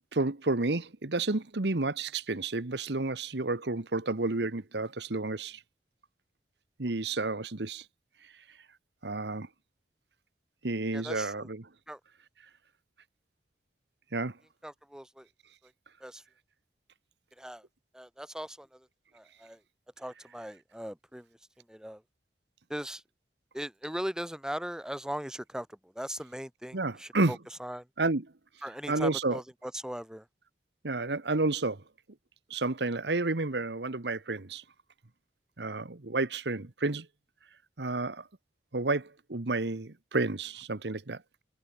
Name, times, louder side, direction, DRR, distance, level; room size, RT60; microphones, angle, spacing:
voice 1, 0.1-5.6 6.8-7.8 9.0-9.5 10.6-11.7 14.1-14.3 26.7-27.4 28.0-28.3 28.9-29.4 30.8-31.8 32.5-34.6 35.6-37.1 37.8-38.3 38.7-41.2, right 2 dB, 70° right, 1.3 m, -30 dB
voice 2, 10.9-11.5 11.9-12.0 14.6-15.3 16.0-16.2 17.4-17.7 17.9-18.9 19.1-19.6 20.0-21.3 21.6-22.0 22.7-23.0 23.5-27.9 28.6-30.3, equal, 5° right, 1.5 m, -39 dB
head